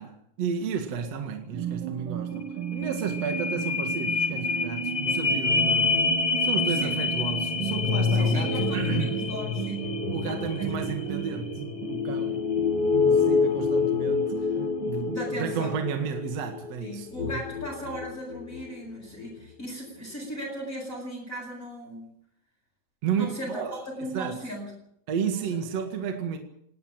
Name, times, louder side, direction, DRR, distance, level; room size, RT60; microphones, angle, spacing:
voice 1, 0.0-6.0 6.4-9.2 10.1-11.6 11.9-12.5 12.9-14.5 14.9-17.4 23.0-23.8 24.1-24.4 25.1-26.4, right 6 dB, 55° right, 2.9 m, -32 dB
sound 1, 1.5-16.2, right 8 dB, 80° right, 3.5 m, -35 dB
sound 2, 2.4-2.5 2.8-18.7 19.2-19.3, left 5 dB, 40° left, 1.6 m, -27 dB
voice 2, 6.7-7.0 8.1-9.9 10.2-11.2 15.0-15.8 16.8-22.1 23.1-24.7 25.3-25.6, equal, 20° left, 8.4 m, -37 dB
20.0 x 17.5 x 9.0 m
omnidirectional pair, 3.8 m